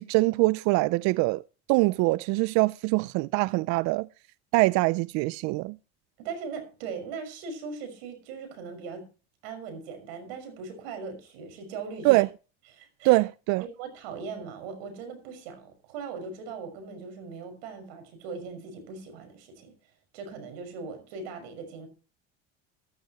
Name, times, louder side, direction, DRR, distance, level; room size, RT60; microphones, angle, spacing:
voice 1, 0.0-1.4 1.7-4.1 4.5-5.8 12.0-12.3 13.0-13.6, right 22 dB, 65° right, 0.5 m, -23 dB
voice 2, 6.2-9.0 9.4-12.1 12.7-13.2 13.8-19.7 20.1-21.9, right 5 dB, 85° right, 5.9 m, -39 dB
14.5 x 14.0 x 3.0 m
supercardioid pair, 100°, 30 cm